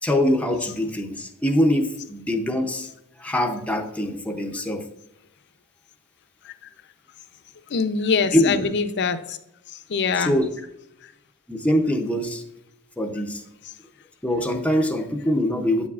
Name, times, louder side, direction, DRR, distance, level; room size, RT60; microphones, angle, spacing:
voice 1, 0.0-2.9 3.2-4.9 8.3-8.6 10.2-10.5 11.5-12.4 13.0-13.4 14.2-15.9, left 1 dB, 5° left, 0.6 m, -23 dB
voice 2, 7.7-9.4 9.7-10.4, left 5 dB, 55° left, 0.6 m, -24 dB
8.7 x 7.1 x 2.4 m
head